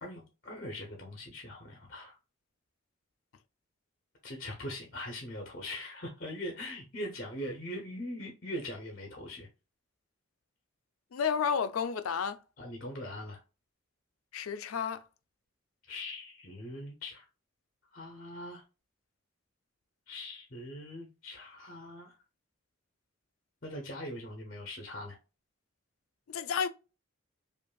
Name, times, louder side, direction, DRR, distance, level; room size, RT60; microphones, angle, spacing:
voice 1, 0.0-2.1 4.2-9.5 12.6-13.4 15.9-17.3 17.9-18.6 20.1-22.2 23.6-25.2, left 1 dB, 40° left, 0.7 m, -41 dB
voice 2, 11.1-12.4 14.3-15.0 26.3-26.7, left 6 dB, 90° left, 0.4 m, -31 dB
5.1 x 2.5 x 2.3 m
head